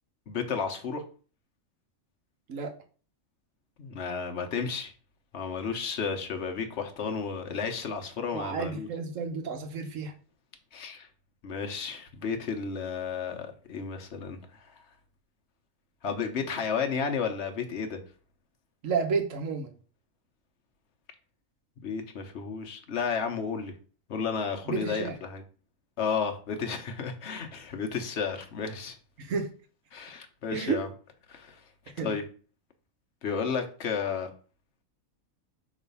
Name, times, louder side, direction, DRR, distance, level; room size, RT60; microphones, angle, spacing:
voice 1, 0.3-1.0 3.8-4.9 5.3-8.9 10.7-11.1 11.4-14.7 16.0-18.0 21.8-23.7 24.1-25.4 26.0-29.0 29.9-30.9 31.3-31.6 32.0-32.2 33.2-34.3, left 6 dB, 55° left, 4 dB, 1.2 m, -32 dB
voice 2, 8.3-10.1 18.8-19.7 24.7-25.2 29.2-29.5 30.5-30.8 32.0-32.2, right 5 dB, 70° right, 6 dB, 1.3 m, -31 dB
6.1 x 3.2 x 5.4 m, 0.40 s
omnidirectional pair, 1.4 m